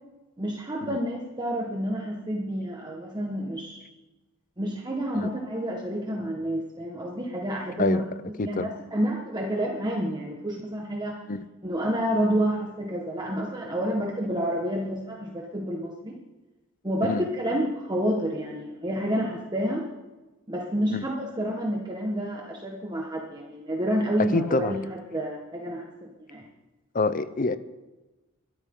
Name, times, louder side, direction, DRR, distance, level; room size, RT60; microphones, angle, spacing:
voice 1, 0.4-3.8 4.6-8.0 8.4-11.2 11.6-16.2 16.8-19.9 20.5-26.5, equal, 20° right, 1.5 m, -29 dB
voice 2, 24.3-24.7 26.9-27.6, left 3 dB, 40° left, 0.7 m, -26 dB
23.0 x 13.0 x 3.9 m
head